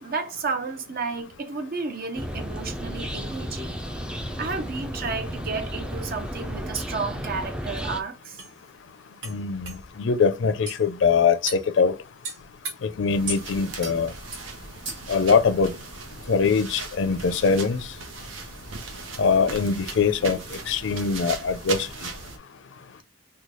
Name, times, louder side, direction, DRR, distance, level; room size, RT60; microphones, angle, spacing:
voice 1, 0.0-3.8 4.4-8.4, right 4 dB, 50° right, 0.6 m, -32 dB
sound 1, 2.2-8.0, equal, 5° right, 0.3 m, -33 dB
sound 2, 7.8-7.9 8.4-8.5 9.2-9.4 9.6-9.8 10.7-10.8 11.5-11.7 12.2-12.7 13.3-13.4 13.8-14.0 14.3-14.4 14.8-15.2, right 3 dB, 70° right, 1.5 m, -34 dB
voice 2, 9.3-9.7 10.0-11.9 12.8-14.1 15.1-15.7 16.3-17.8 19.2-20.4 20.7-21.9, left 5 dB, 70° left, 0.4 m, -22 dB
sound 3, 13.1-22.4, right 3 dB, 90° right, 0.8 m, -38 dB
3.1 x 2.2 x 3.8 m
head